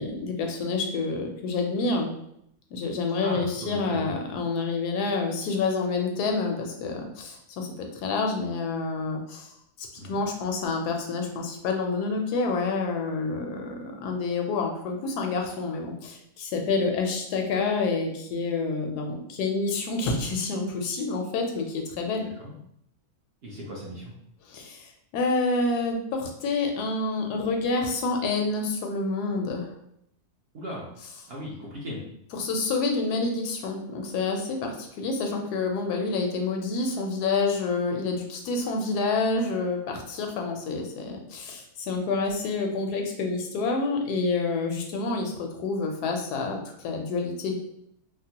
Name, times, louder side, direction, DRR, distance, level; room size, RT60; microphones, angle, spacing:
voice 1, 0.0-2.1 2.7-9.5 9.8-22.3 24.5-29.7 32.3-47.6, left 3 dB, 85° left, 3 dB, 1.2 m, -28 dB
voice 2, 3.2-4.1 10.0-10.2 22.4-22.5 23.4-24.1 30.5-30.9 31.3-32.0, equal, 50° right, -4 dB, 0.8 m, -36 dB
3.5 x 2.0 x 2.8 m, 0.75 s
omnidirectional pair, 1.7 m